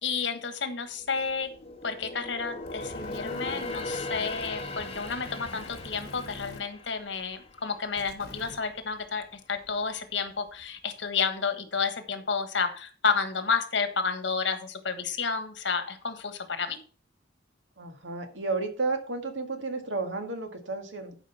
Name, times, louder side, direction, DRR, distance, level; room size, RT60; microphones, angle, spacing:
voice 1, 0.0-1.5 1.8-16.8, left 5 dB, 75° left, 9 dB, 1.4 m, -31 dB
sound 1, 0.9-8.4 8.8-9.0 9.5-10.3 10.6-10.7, left 2 dB, 35° left, 1.6 m, -39 dB
sound 2, 2.6-6.6 8.0-8.6, left 2 dB, 60° left, 1.7 m, -44 dB
voice 2, 17.8-21.2, right 3 dB, 85° right, 6 dB, 1.9 m, -32 dB
11.5 x 5.1 x 5.6 m, 0.39 s
head